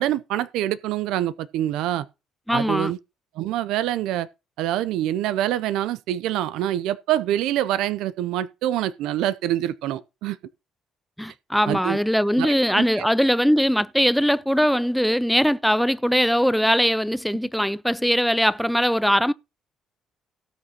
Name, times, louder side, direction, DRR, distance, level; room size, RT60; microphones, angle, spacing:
voice 1, 0.0-2.1 2.5-3.0 3.4-4.3 4.6-10.4 11.7-12.0 12.4-13.1, right 12 dB, 80° right, 0.4 m, -25 dB
voice 2, 2.5-2.9 11.2-19.3, equal, ahead, 0.4 m, -21 dB
18.0 x 6.3 x 2.8 m
supercardioid pair, 75°, 0 cm